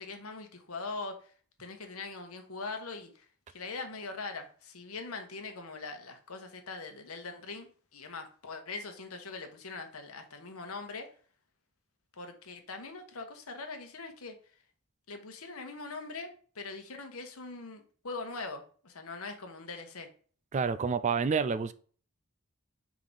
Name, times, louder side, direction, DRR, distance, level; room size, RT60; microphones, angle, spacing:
voice 1, 0.0-1.3 1.6-11.1 12.1-14.4 15.1-20.1, left 3 dB, 80° left, 1.1 m, -42 dB
voice 2, 20.5-21.7, right 5 dB, 35° right, 0.4 m, -28 dB
4.9 x 3.8 x 5.3 m
head